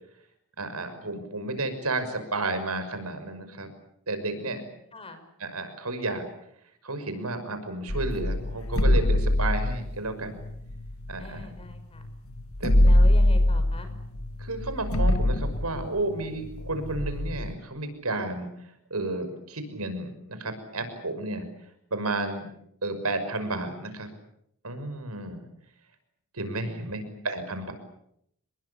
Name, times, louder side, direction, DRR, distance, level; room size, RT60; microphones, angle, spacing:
voice 1, 0.6-3.7 4.1-4.6 5.4-6.2 6.8-10.4 11.1-11.5 12.6-12.7 14.4-21.5 21.9-22.5 22.8-24.1 24.6-25.4 26.3-27.7, right 2 dB, 90° right, 9 dB, 6.0 m, -32 dB
voice 2, 4.9-5.3 11.2-12.0 12.8-13.9 26.6-27.2, left 2 dB, 25° left, 8 dB, 6.0 m, -42 dB
sound 1, 7.9-11.8 12.0-12.1 12.4-17.5, left 1 dB, 75° left, 2.0 m, -24 dB
28.0 x 22.0 x 8.6 m, 0.75 s
head